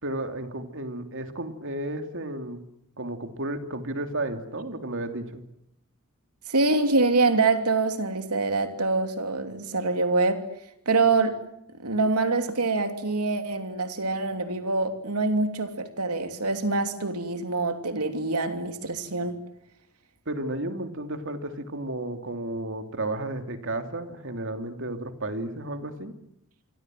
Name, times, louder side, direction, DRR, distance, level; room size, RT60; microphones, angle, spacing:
voice 1, 0.0-2.6 3.0-5.4 20.3-26.2, right 1 dB, 60° right, 7 dB, 3.0 m, -33 dB
voice 2, 6.5-10.4 10.8-11.4 11.8-19.4, right 3 dB, 90° right, 7 dB, 3.2 m, -25 dB
28.0 x 24.5 x 7.8 m, 0.78 s
head